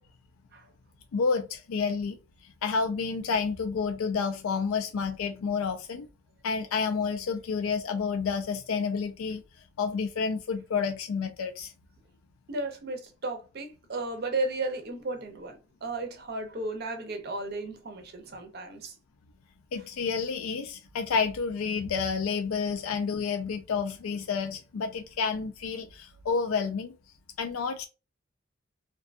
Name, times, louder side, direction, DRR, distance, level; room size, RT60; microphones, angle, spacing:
voice 1, 1.1-2.2 2.4-6.1 6.4-9.4 9.8-11.7 19.7-26.9 27.4-27.9, left 5 dB, 85° left, 0.4 m, -30 dB
voice 2, 12.5-18.9, right 2 dB, 50° right, 0.5 m, -34 dB
2.6 x 2.2 x 2.4 m
head